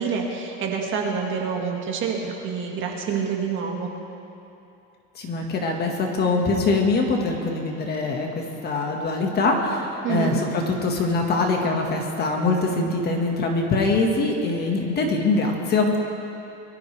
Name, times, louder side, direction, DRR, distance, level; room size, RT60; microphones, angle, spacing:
voice 1, 0.0-3.9 10.0-10.4, right 5 dB, 35° right, 1 dB, 1.8 m, -27 dB
voice 2, 5.1-16.0, left 3 dB, 25° left, 1 dB, 1.6 m, -23 dB
23.0 x 13.0 x 3.3 m, 2.8 s
supercardioid pair, 150°, 36 cm